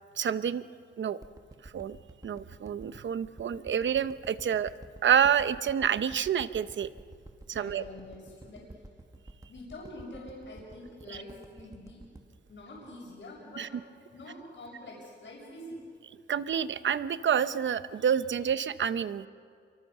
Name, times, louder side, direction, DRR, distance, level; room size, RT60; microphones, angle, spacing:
voice 1, 0.2-0.6 1.0-1.2 1.6-2.0 2.2-4.7 5.0-6.9 7.5-7.8 11.1-11.2 13.6-13.7 16.3-19.3, right 8 dB, 70° right, 13 dB, 0.8 m, -28 dB
sound 1, 1.2-13.5 14.0-14.1, right 2 dB, 15° right, 1.5 m, -51 dB
voice 2, 7.5-8.7 9.5-12.0 12.5-13.7 14.0-15.8, left 1 dB, 70° left, -3 dB, 6.7 m, -46 dB
29.0 x 24.0 x 6.8 m, 2.3 s
wide cardioid pair, 115°, 20 cm